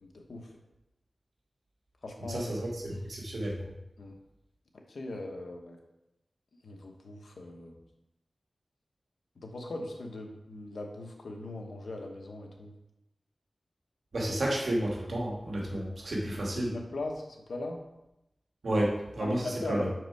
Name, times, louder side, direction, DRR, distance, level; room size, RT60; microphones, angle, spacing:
voice 1, 0.0-0.5 2.0-2.5 4.0-4.2 4.9-5.8 6.6-7.8 9.4-12.7 16.2-17.8 19.2-19.9, left 2 dB, 90° left, 2 dB, 1.1 m, -40 dB
voice 2, 2.3-3.6 14.1-16.7 18.6-19.9, right 1 dB, 80° right, -3 dB, 1.9 m, -31 dB
6.3 x 4.9 x 4.7 m, 0.88 s
wide cardioid pair, 60°, 0 cm